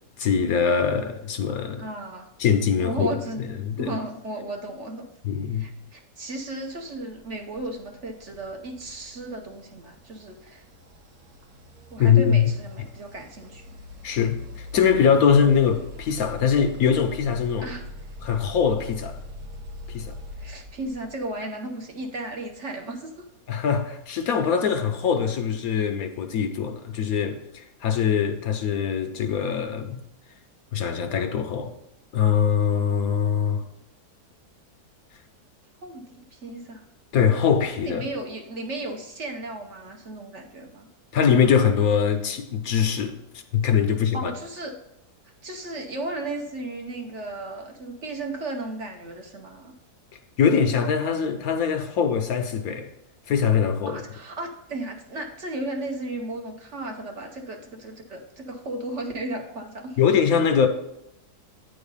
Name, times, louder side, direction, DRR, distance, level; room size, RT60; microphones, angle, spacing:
voice 1, 0.2-1.9 2.4-4.0 5.2-5.7 12.0-12.5 14.0-17.7 18.2-19.2 19.9-20.1 23.5-30.0 30.7-31.7 32.1-33.6 37.1-38.0 41.1-43.2 43.5-44.3 50.4-52.9 53.3-54.0 60.0-60.7, left 7 dB, 70° left, 1.1 m, -22 dB
voice 2, 1.8-2.3 2.8-3.4 3.8-5.1 5.5-10.6 11.9-13.8 17.6-17.8 20.4-23.2 35.8-36.0 36.3-36.8 37.8-40.9 44.1-44.7 45.4-49.7 53.9-60.0, right 2 dB, 50° right, 1.0 m, -35 dB
sound 1, 6.9-21.4, left 2 dB, 75° right, 1.5 m, -43 dB
9.2 x 4.0 x 5.3 m
omnidirectional pair, 1.7 m